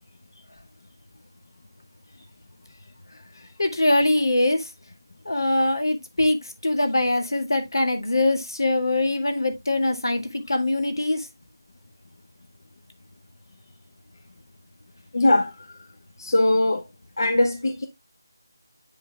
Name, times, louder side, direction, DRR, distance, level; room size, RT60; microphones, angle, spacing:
voice 1, 3.6-4.7 5.3-11.3, left 2 dB, 85° left, 1.8 m, -23 dB
voice 2, 15.1-15.7 16.2-16.8 17.2-17.9, left 1 dB, 60° left, 1.0 m, -21 dB
8.8 x 5.0 x 2.2 m
figure-of-eight pair, 165°, 2 cm